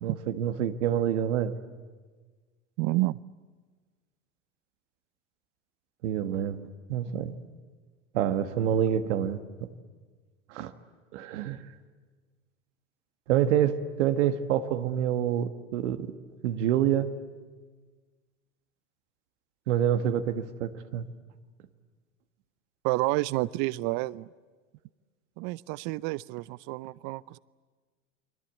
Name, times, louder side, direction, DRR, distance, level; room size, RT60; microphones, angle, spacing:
voice 1, 0.0-1.5 6.0-6.6 6.9-7.3 8.1-9.4 10.5-10.7 11.1-11.6 13.3-16.1 16.4-17.1 19.7-21.1, right 10 dB, 70° right, 9 dB, 1.6 m, -27 dB
voice 2, 2.8-3.2 22.8-24.3 25.4-27.4, right 20 dB, 55° right, 21 dB, 0.7 m, -29 dB
30.0 x 21.5 x 8.3 m, 1.4 s
hypercardioid pair, 95°, 36 cm